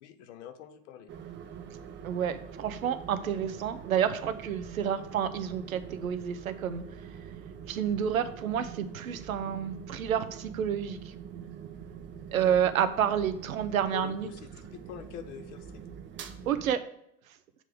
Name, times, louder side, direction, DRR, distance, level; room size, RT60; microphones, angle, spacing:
voice 1, 0.0-1.1 12.4-12.6 13.9-15.8, left 9 dB, 60° left, 9 dB, 0.8 m, -44 dB
sound 1, 1.1-16.7, right 7 dB, 25° right, 0.6 m, -45 dB
voice 2, 2.0-6.8 7.7-11.0 12.3-14.3 16.5-16.8, right 8 dB, 75° right, 11 dB, 0.6 m, -29 dB
7.4 x 3.3 x 4.9 m, 0.76 s
figure-of-eight pair, 75°, 41 cm